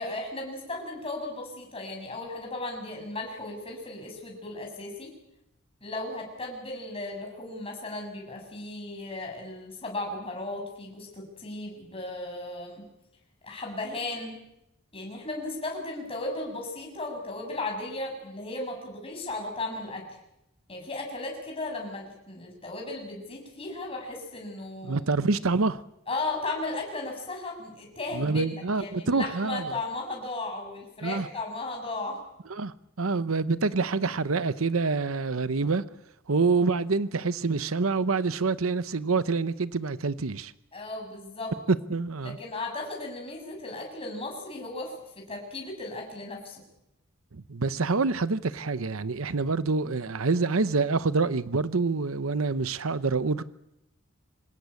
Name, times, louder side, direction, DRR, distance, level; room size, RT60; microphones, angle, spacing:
voice 1, 0.0-5.1 5.8-12.8 13.4-14.4 14.9-20.0 20.7-25.0 26.1-32.2 40.7-41.5 42.2-46.6, left 2 dB, 25° left, 7.3 m, -36 dB
voice 2, 24.8-25.8 28.1-29.7 31.0-31.3 32.5-35.8 36.3-40.5 41.9-42.4 47.3-53.4, right 4 dB, 85° right, 0.9 m, -26 dB
26.0 x 20.0 x 8.4 m
head